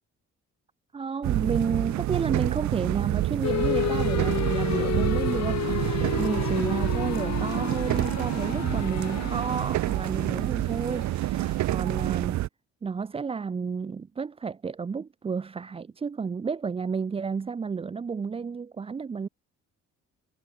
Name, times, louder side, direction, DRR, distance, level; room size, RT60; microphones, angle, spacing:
voice 1, 0.9-12.4 12.8-19.3, right 5 dB, 20° right, 0.4 m, -31 dB
sound 1, 1.2-12.5, right 15 dB, 70° right, 0.7 m, -28 dB
sound 2, 3.4-11.7, left 12 dB, 60° left, 1.0 m, -31 dB
cardioid pair, 90°, 30 cm